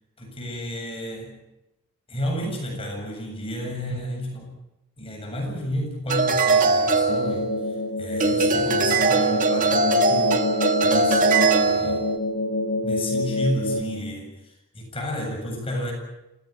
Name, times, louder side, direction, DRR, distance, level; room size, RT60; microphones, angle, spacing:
voice 1, 0.2-1.4 2.1-4.5 5.0-10.4 10.8-12.1 12.8-15.9, equal, 25° left, 0 dB, 7.8 m, -31 dB
sound 1, 6.1-7.8 8.2-12.2, right 3 dB, 35° right, 1.8 m, -21 dB
sound 2, 7.1-13.8, left 2 dB, 55° left, 1.7 m, -27 dB
27.5 x 17.5 x 9.2 m, 0.92 s
head